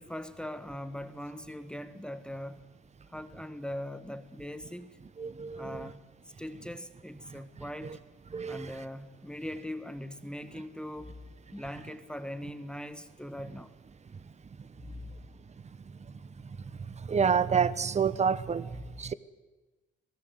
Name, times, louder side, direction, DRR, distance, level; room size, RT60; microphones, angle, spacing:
voice 1, 0.0-2.6 3.1-5.0 5.5-6.0 6.4-8.0 8.5-11.2 11.5-13.7, left 1 dB, 5° left, 9 dB, 1.5 m, -41 dB
voice 2, 5.2-5.9 8.3-8.7 16.9-19.1, right 6 dB, 35° right, 16 dB, 1.1 m, -28 dB
26.0 x 17.5 x 8.1 m, 1.2 s
cardioid pair, 90°, 20 cm